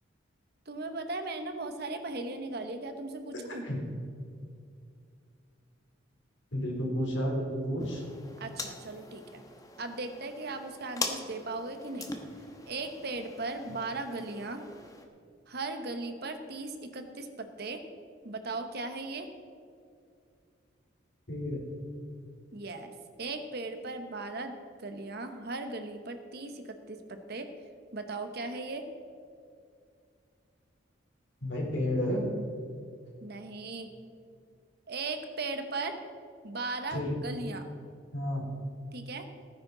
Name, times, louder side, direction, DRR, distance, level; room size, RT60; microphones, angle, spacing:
voice 1, 0.7-3.6 8.4-9.4 9.8-12.1 12.7-14.6 15.5-17.8 18.2-19.3 22.5-22.9 23.2-27.0 27.3-27.5 27.9-28.8 33.2-33.9 34.9-35.9 36.4-37.6 38.9-39.2, right 3 dB, 55° right, 7 dB, 1.1 m, -37 dB
voice 2, 6.5-8.0 21.3-21.6 31.4-32.2 36.9-37.2 38.1-38.4, equal, 70° left, -2 dB, 3.5 m, -31 dB
sound 1, 7.8-15.1, left 3 dB, 20° left, 1.0 m, -42 dB
17.0 x 9.5 x 3.9 m, 2.3 s
head